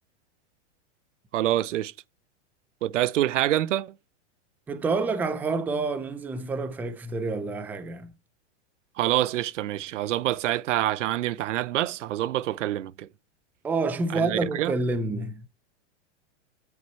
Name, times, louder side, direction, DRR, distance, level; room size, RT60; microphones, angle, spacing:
voice 1, 1.3-1.9 2.8-3.9 9.0-13.1 14.1-14.7, right 13 dB, 80° right, 0.8 m, -26 dB
voice 2, 4.7-8.1 13.6-15.5, right 3 dB, 5° right, 0.5 m, -28 dB
9.7 x 8.3 x 4.4 m
supercardioid pair, 160°, 36 cm